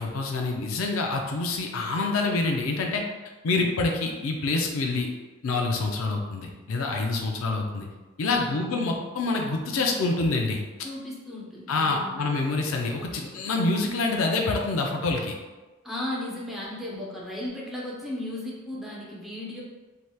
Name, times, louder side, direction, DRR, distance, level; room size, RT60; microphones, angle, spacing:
voice 1, 0.0-3.0 3.4-5.1 5.4-7.9 8.2-10.6 11.7-15.3, left 3 dB, 75° left, 1 dB, 0.4 m, -26 dB
voice 2, 8.3-8.8 10.8-12.2 15.8-19.6, left 1 dB, ahead, -5 dB, 0.5 m, -35 dB
3.2 x 2.9 x 2.2 m, 1.2 s
head